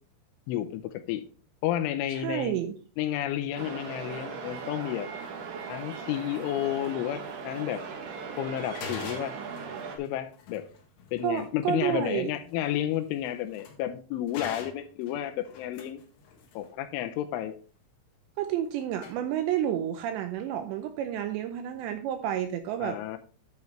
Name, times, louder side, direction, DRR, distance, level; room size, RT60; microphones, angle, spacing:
voice 1, 0.5-1.2 1.6-2.6 3.0-5.1 5.7-7.8 8.4-9.4 10.0-10.7 11.1-16.0 16.6-17.6 22.8-23.2, left 12 dB, 80° left, 3.0 m, -31 dB
voice 2, 2.1-2.7 11.2-12.3 18.4-23.0, right 10 dB, 85° right, 2.5 m, -30 dB
sound 1, 3.6-10.0, right 5 dB, 65° right, 3.2 m, -39 dB
sound 2, 4.8-5.0 6.0-6.2 6.9-7.0 7.5-7.8 8.1-8.2 8.5-13.9 14.2-16.7 18.7-18.8 18.9-19.1, left 5 dB, 65° left, 3.7 m, -45 dB
10.5 x 8.1 x 3.2 m
omnidirectional pair, 5.7 m